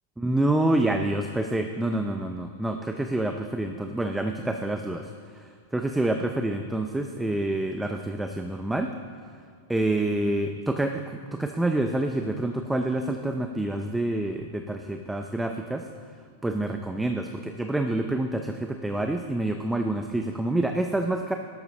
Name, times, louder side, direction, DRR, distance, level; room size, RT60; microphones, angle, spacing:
voice 1, 0.2-8.9 9.7-15.8 16.4-21.3, right 1 dB, 5° right, 5 dB, 0.5 m, -27 dB
12.0 x 12.0 x 3.2 m, 2.2 s
hypercardioid pair, 135°, 0 cm